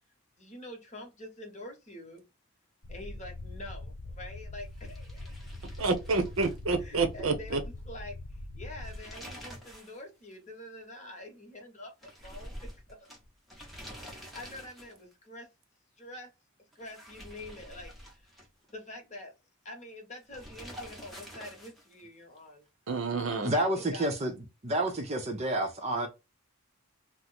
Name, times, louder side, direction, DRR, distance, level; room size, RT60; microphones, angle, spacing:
voice 1, 0.4-2.2 2.9-5.3 6.8-8.2 8.5-12.7 13.0-13.1 14.0-15.5 16.0-16.3 16.7-18.3 18.7-19.3 19.6-22.6 23.5-24.1, left 1 dB, 35° left, 1.0 m, -46 dB
sound 1, 2.8-9.0, left 2 dB, 80° left, 0.6 m, -43 dB
sound 2, 4.7-7.2 7.5-7.6 8.6-10.0 10.3-10.4 12.0-15.1 16.7-18.7 20.3-22.0, equal, ahead, 0.8 m, -47 dB
voice 2, 5.8-7.6 22.9-23.5, right 3 dB, 70° right, 0.7 m, -29 dB
voice 3, 23.4-24.3 24.6-26.1, right 1 dB, 30° right, 0.6 m, -29 dB
2.9 x 2.0 x 3.9 m
head